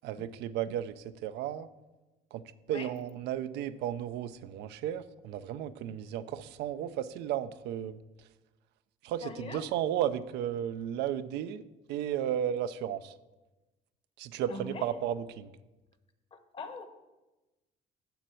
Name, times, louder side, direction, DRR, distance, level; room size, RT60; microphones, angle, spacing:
voice 1, 0.0-0.9 1.2-1.7 2.3-8.0 9.0-11.6 11.9-13.1 14.2-15.5, right 10 dB, 85° right, 12 dB, 0.5 m, -34 dB
voice 2, 9.2-9.6 14.5-14.9 16.3-16.9, left 3 dB, 35° left, 8 dB, 1.1 m, -42 dB
7.0 x 6.2 x 7.7 m, 1.1 s
cardioid pair, 110°, 17 cm